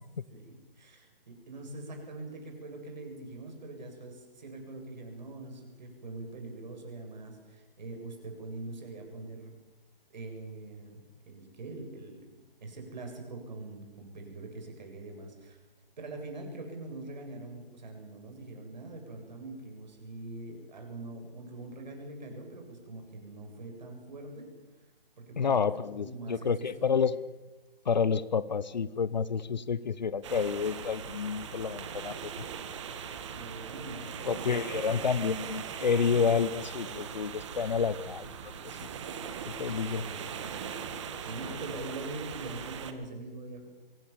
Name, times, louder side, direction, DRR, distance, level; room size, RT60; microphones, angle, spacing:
voice 1, 0.3-9.5 10.1-15.6 16.0-24.5 25.2-27.1 33.2-34.3 34.7-34.9 39.7-40.2 41.3-43.7, right 2 dB, 50° right, 3 dB, 7.9 m, -43 dB
voice 2, 25.4-27.1 27.8-32.4 34.2-38.9 39.5-40.0, left 6 dB, 50° left, 18 dB, 1.0 m, -29 dB
sound 1, 30.2-42.9, right 7 dB, 30° right, 2.1 m, -40 dB
25.0 x 22.5 x 7.4 m, 1.1 s
figure-of-eight pair, 145°, 29 cm